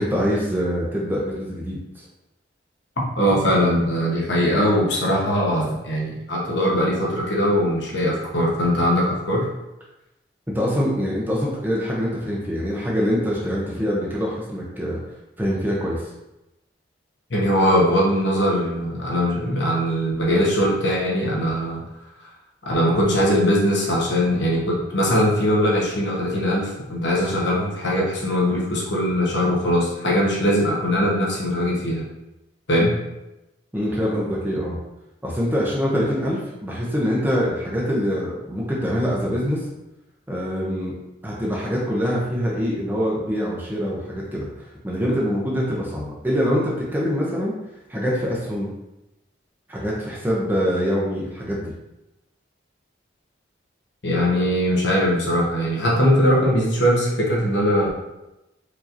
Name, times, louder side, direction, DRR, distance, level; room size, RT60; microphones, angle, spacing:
voice 1, 0.0-2.1 10.5-15.0 15.4-16.0 33.7-34.8 35.2-39.6 40.3-41.0 41.2-44.5 44.8-47.5 47.9-48.7 49.7-51.7, equal, 10° right, -4 dB, 0.7 m, -24 dB
voice 2, 3.2-9.5 17.3-21.8 22.7-32.0 32.7-32.9 54.0-57.9, equal, 70° left, -3 dB, 1.0 m, -21 dB
4.8 x 2.9 x 2.6 m, 0.94 s
head